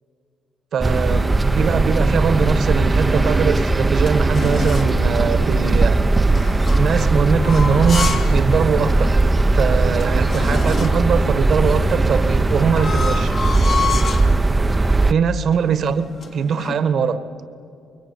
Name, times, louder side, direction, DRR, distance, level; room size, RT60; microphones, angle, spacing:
voice 1, 0.7-6.0 6.8-9.2 9.5-13.3 15.1-16.1 16.3-17.2, right 6 dB, 60° right, 1.5 m, -21 dB
sound 1, 0.8-15.1, right 2 dB, 20° right, 0.8 m, -18 dB
sound 2, 3.4-5.0 6.3-8.4 8.8-8.9 9.5-9.6 9.8-11.1 12.1-14.3 15.0-15.3 15.5-16.8, left 5 dB, 55° left, 3.2 m, -29 dB
26.0 x 22.5 x 9.7 m
cardioid pair, 90°, 0 cm